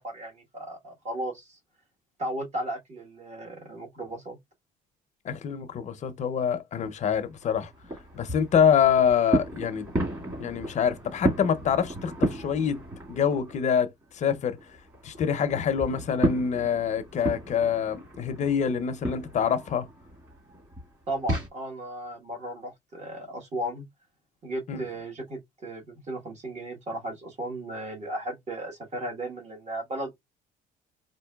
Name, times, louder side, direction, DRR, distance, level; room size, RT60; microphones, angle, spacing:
voice 1, 0.0-1.6 2.2-4.4 21.1-23.8 24.4-30.1, right 1 dB, 45° right, 1.4 m, -35 dB
voice 2, 5.2-7.7 8.1-9.9 10.4-12.8 13.1-14.6 15.0-19.9 24.7-24.8, left 7 dB, 50° left, 0.5 m, -25 dB
sound 1, 6.8-13.7 14.0-21.5, right 1 dB, 25° right, 1.9 m, -33 dB
4.4 x 2.5 x 2.2 m
cardioid pair, 100°, 16 cm